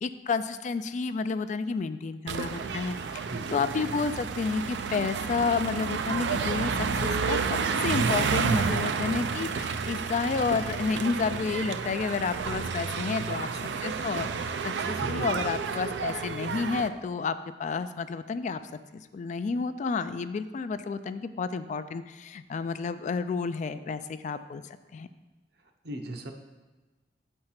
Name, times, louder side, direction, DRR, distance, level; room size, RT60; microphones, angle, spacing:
voice 1, 0.0-13.5 13.8-18.6 18.9-24.6 24.9-25.1, left 4 dB, 45° left, 11 dB, 0.3 m, -31 dB
sound 1, 2.3-16.9, right 5 dB, 80° right, 0.4 m, -30 dB
voice 2, 3.3-3.7 13.5-13.7 14.8-15.5 25.8-26.3, right 1 dB, 65° right, 4 dB, 0.9 m, -38 dB
7.6 x 4.5 x 5.7 m, 1.2 s
head